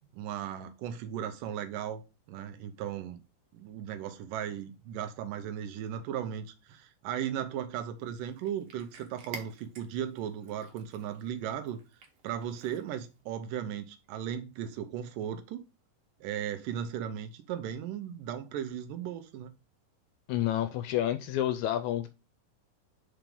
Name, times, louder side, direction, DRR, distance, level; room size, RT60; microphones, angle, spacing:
voice 1, 0.1-2.0 2.3-3.2 3.5-11.8 12.2-15.6 16.2-19.6, right 9 dB, 85° right, 2.4 m, -36 dB
Cat, 8.0-13.2, right 4 dB, 60° right, 2.1 m, -51 dB
voice 2, 20.3-22.1, left 12 dB, 80° left, 1.8 m, -29 dB
5.0 x 4.6 x 5.2 m
omnidirectional pair, 3.7 m